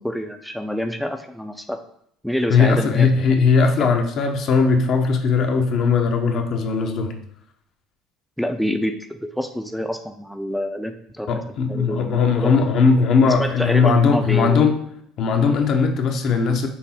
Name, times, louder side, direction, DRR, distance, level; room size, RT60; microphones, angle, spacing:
voice 1, 0.0-1.8 2.2-3.1 3.8-3.9 8.4-11.3 11.7-12.6 13.2-14.7, equal, ahead, 5 dB, 0.4 m, -27 dB
voice 2, 2.5-7.2 11.3-14.8 15.2-16.7, left 5 dB, 60° left, 4 dB, 0.6 m, -18 dB
5.7 x 2.0 x 4.1 m, 0.70 s
hypercardioid pair, 70°, 0 cm